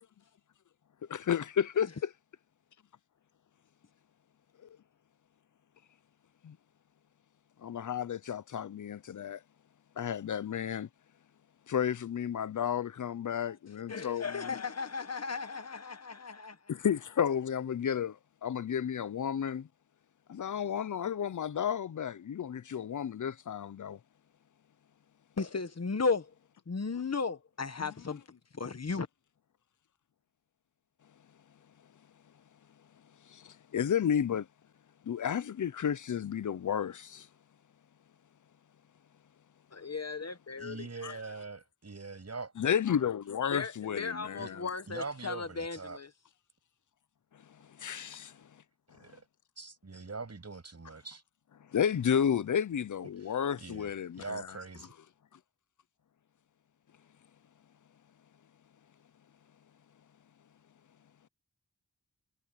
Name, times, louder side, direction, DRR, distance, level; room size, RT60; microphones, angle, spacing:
voice 1, 1.1-2.1 6.4-6.6 7.6-9.4 10.0-10.9 11.7-14.5 16.7-19.7 20.3-24.0 27.8-27.9 33.3-34.5 35.0-37.3 41.0-41.1 42.6-44.6 47.8-48.4 51.7-54.6, left 8 dB, 85° left, 0.7 m, -32 dB
voice 2, 13.9-16.6 25.4-26.3 26.7-29.1 39.7-41.2 43.5-46.1, left 4 dB, 60° left, 1.6 m, -35 dB
voice 3, 40.6-42.5 44.4-44.5 44.9-46.0 48.9-49.2 49.6-51.2 53.3-54.9, right 4 dB, 60° right, 7.8 m, -43 dB
cardioid pair, 45°, 30 cm